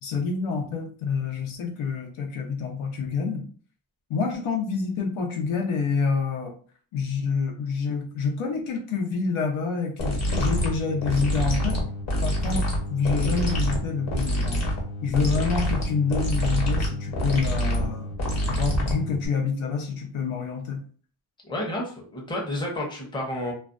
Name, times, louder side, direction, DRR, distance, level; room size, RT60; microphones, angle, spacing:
voice 1, 0.0-3.4 4.1-6.5 6.9-11.8 12.2-14.6 15.0-18.1 18.5-20.8, left 5 dB, 75° left, 3 dB, 0.8 m, -27 dB
sound 1, 10.0-19.3, equal, 35° left, 1.0 m, -26 dB
voice 2, 21.4-23.5, left 1 dB, 10° left, -2 dB, 0.7 m, -30 dB
2.4 x 2.2 x 2.4 m, 0.43 s
wide cardioid pair, 120°, 50 cm